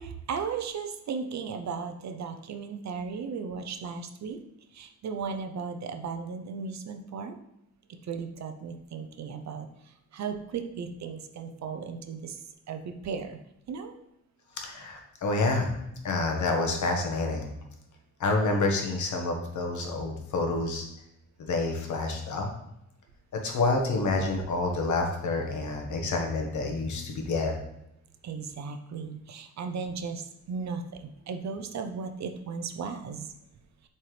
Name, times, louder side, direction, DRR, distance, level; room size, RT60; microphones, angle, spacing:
voice 1, 0.0-4.4 4.7-7.4 8.1-9.7 10.1-12.4 12.7-13.4 13.7-13.9 28.2-33.3, right 5 dB, 65° right, 7 dB, 0.7 m, -36 dB
voice 2, 14.6-15.7 16.0-17.5 18.2-20.9 21.4-22.5 23.3-27.6, left 3 dB, 70° left, 2 dB, 1.4 m, -28 dB
7.4 x 4.4 x 3.3 m, 0.82 s
cardioid pair, 120°, 30 cm